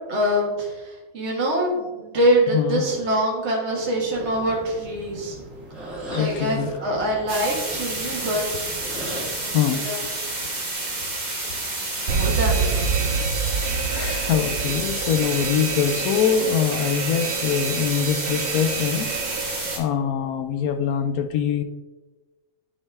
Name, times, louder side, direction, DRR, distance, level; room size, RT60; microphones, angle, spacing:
voice 1, 0.1-5.4 6.1-8.5 9.4-10.0 12.0-13.1, right 1 dB, 45° right, -2 dB, 1.8 m, -24 dB
sound 1, 4.1-9.7, right 1 dB, ahead, 2.2 m, -38 dB
voice 2, 6.1-6.7 9.2-9.3 9.5-9.8 11.4-11.5 13.9-21.6, left 8 dB, 75° left, 9 dB, 1.0 m, -24 dB
sound 2, 7.3-19.8, right 2 dB, 30° right, 1.6 m, -30 dB
Alarm, 12.1-19.8, right 5 dB, 65° right, 1.0 m, -27 dB
9.9 x 4.2 x 3.5 m, 1.2 s
omnidirectional pair, 1.7 m